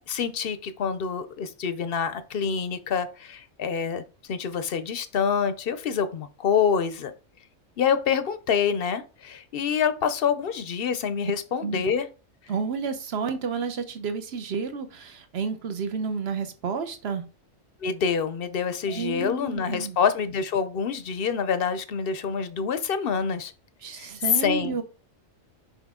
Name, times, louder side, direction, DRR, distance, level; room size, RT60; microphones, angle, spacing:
voice 1, 0.1-4.0 4.3-7.1 7.8-12.1 17.8-23.5 23.9-24.1 24.4-24.8, left 6 dB, 55° left, 0.7 m, -26 dB
voice 2, 12.5-17.2 18.9-20.0 23.8-24.8, right 5 dB, 55° right, 1.1 m, -31 dB
6.4 x 5.1 x 3.7 m
omnidirectional pair, 1.4 m